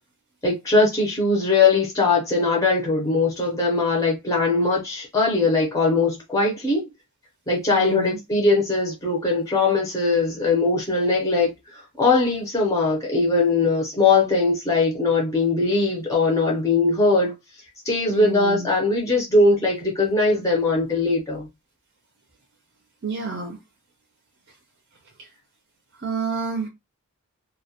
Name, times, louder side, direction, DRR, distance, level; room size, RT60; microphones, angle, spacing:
voice 1, 0.4-6.9 7.5-17.3 17.8-21.5, left 3 dB, 15° left, 0.6 m, -20 dB
voice 2, 7.7-8.2 18.1-18.7 23.0-23.6 25.2-25.3 26.0-26.7, right 4 dB, 50° right, 0.5 m, -29 dB
2.2 x 2.1 x 2.7 m
head